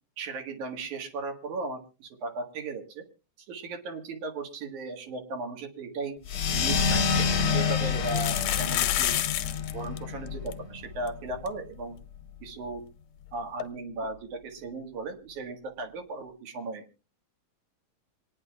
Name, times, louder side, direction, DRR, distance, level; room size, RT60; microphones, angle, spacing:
voice 1, 0.2-3.0 3.5-6.1 6.5-9.2 9.7-12.0 12.4-12.8 13.3-16.8, right 3 dB, 70° right, 3 dB, 3.1 m, -36 dB
sound 1, 6.3-6.4 6.7-6.8 7.9-9.7 10.0-10.1 10.3-10.5 11.1-11.2 11.5-11.6 13.6-13.7, left 13 dB, 80° left, 2.2 m, -29 dB
sound 2, 6.3-11.4, left 6 dB, 55° left, 1.5 m, -28 dB
26.0 x 9.8 x 2.4 m, 0.31 s
omnidirectional pair, 3.6 m